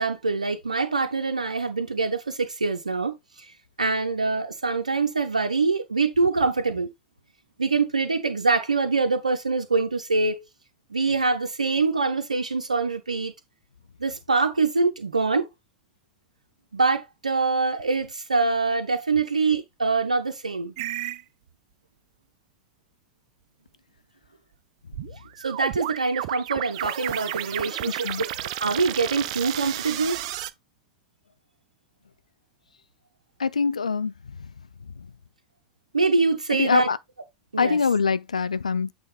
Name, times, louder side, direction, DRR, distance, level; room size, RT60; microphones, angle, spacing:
voice 1, 0.0-3.5 3.8-6.9 7.6-10.4 10.9-13.3 14.0-15.5 16.7-20.7 25.4-28.3 28.6-30.2 35.9-36.9 37.5-37.8, right 4 dB, 80° right, 0.8 m, -24 dB
sound 1, 20.8-21.2 24.9-30.5, right 14 dB, 55° right, 0.5 m, -32 dB
voice 2, 27.9-28.2 33.4-34.5 35.0-35.1 36.6-37.0 37.6-38.9, left 5 dB, 80° left, 0.5 m, -24 dB
8.5 x 3.4 x 4.1 m
figure-of-eight pair, 85°, 4 cm